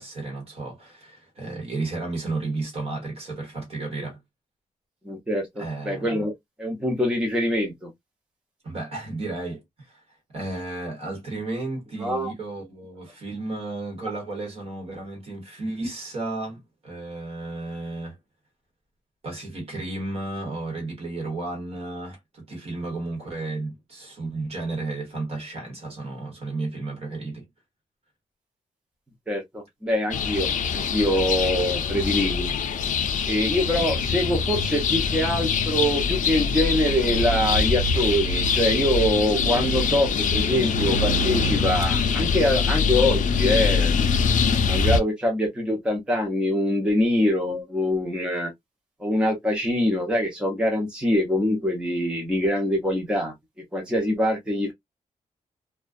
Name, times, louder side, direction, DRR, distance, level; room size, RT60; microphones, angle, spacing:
voice 1, 0.0-4.2 5.6-6.3 8.6-10.0 10.3-18.2 19.2-27.5 33.8-33.9, right 2 dB, 45° right, 1.1 m, -33 dB
voice 2, 5.0-6.3 6.6-7.9 12.0-12.3 29.3-32.5 33.2-44.0 44.6-48.5 49.0-53.3 53.7-54.7, equal, 5° right, 0.6 m, -24 dB
sound 1, 30.1-45.0, left 5 dB, 70° left, 0.4 m, -23 dB
2.3 x 2.2 x 2.4 m
wide cardioid pair, 175°, 14 cm